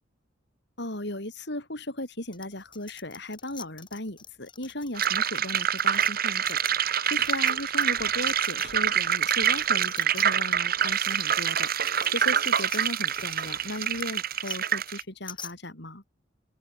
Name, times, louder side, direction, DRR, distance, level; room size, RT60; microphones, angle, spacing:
voice 1, 0.8-16.0, left 1 dB, 65° left, 7.5 m, -36 dB
sound 1, 2.3-8.9 9.2-15.5, left 7 dB, 25° left, 5.4 m, -46 dB
sound 2, 5.0-15.0, right 9 dB, 50° right, 3.3 m, -26 dB
open air
head